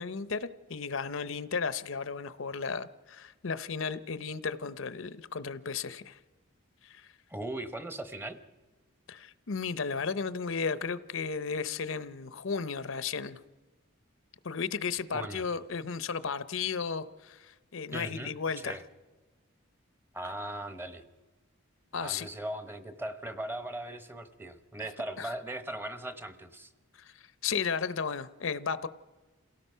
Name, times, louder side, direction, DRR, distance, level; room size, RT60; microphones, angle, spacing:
voice 1, 0.0-6.2 6.8-7.1 9.1-13.4 14.4-18.8 21.9-22.3 25.2-25.3 26.9-28.9, left 5 dB, 65° left, 15 dB, 0.7 m, -34 dB
voice 2, 7.3-8.4 15.1-15.4 17.9-18.8 20.1-21.0 21.9-26.7, right 1 dB, 10° right, 10 dB, 0.9 m, -39 dB
28.0 x 17.5 x 5.6 m, 1.2 s
head